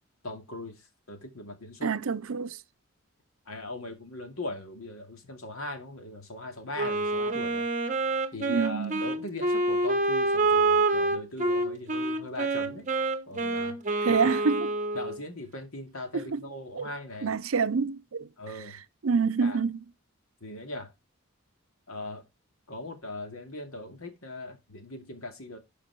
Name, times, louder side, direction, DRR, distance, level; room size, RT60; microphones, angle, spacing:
voice 1, 0.2-1.9 3.5-7.7 8.3-12.9 13.3-13.8 14.1-14.2 14.9-17.3 18.4-18.8 19.4-19.6 20.4-20.9 21.9-22.2 22.7-25.6, left 2 dB, 90° left, 2.4 m, -40 dB
voice 2, 1.8-2.6 8.5-9.0 14.0-14.7 16.1-16.4 16.8-16.9 17.2-18.3 19.0-19.8, right 5 dB, 80° right, 0.6 m, -27 dB
Wind instrument woodwind instrument, 6.8-15.2, right 2 dB, 35° right, 1.1 m, -27 dB
12.0 x 5.0 x 4.7 m
head